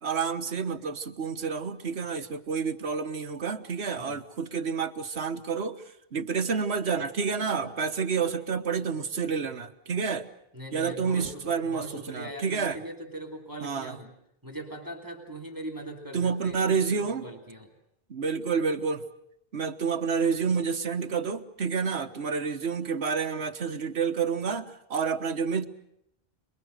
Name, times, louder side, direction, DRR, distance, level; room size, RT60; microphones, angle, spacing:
voice 1, 0.0-5.8 6.1-10.3 10.7-12.8 13.6-14.0 16.1-17.2 18.1-19.0 19.5-25.7, right 5 dB, 90° right, 9 dB, 1.6 m, -29 dB
voice 2, 10.5-14.1 14.4-17.7, right 1 dB, 20° right, 2 dB, 2.8 m, -41 dB
28.0 x 22.0 x 6.5 m, 0.75 s
omnidirectional pair, 1.1 m